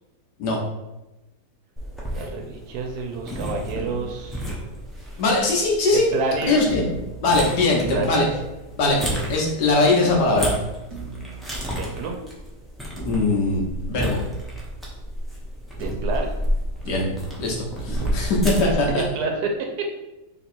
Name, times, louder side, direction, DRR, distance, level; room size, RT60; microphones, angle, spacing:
sound 1, 1.8-18.9, equal, ahead, 0.4 m, -31 dB
voice 1, 2.1-4.5 5.1-5.2 5.9-6.8 7.7-8.2 11.8-12.2 15.8-16.3 18.5-20.0, right 3 dB, 70° right, 3 dB, 1.1 m, -29 dB
sound 2, 3.7-5.3 6.7-9.3 10.0-12.6 13.0-15.5 15.8-19.3, right 4 dB, 25° right, 1.0 m, -38 dB
voice 2, 5.2-6.1 6.5-6.8 7.2-8.3 8.8-9.0 9.3-10.5 13.0-14.2 16.8-17.1 17.4-17.6 17.8-19.0, left 2 dB, 80° left, -2 dB, 1.5 m, -21 dB
3.5 x 2.9 x 4.3 m, 1.0 s
omnidirectional pair, 1.8 m